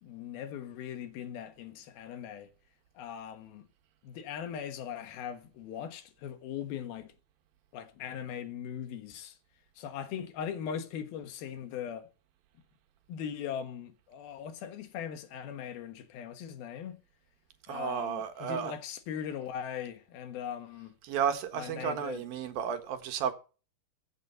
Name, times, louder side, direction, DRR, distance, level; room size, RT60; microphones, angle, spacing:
voice 1, 0.0-2.5 3.0-3.7 4.0-7.1 7.7-9.4 9.8-12.1 13.1-17.0 17.7-20.9 21.5-22.2, left 8 dB, 85° left, 3.3 m, -40 dB
voice 2, 17.7-18.7 21.0-23.3, right 8 dB, 75° right, 3.2 m, -33 dB
15.0 x 7.1 x 5.8 m
omnidirectional pair, 4.2 m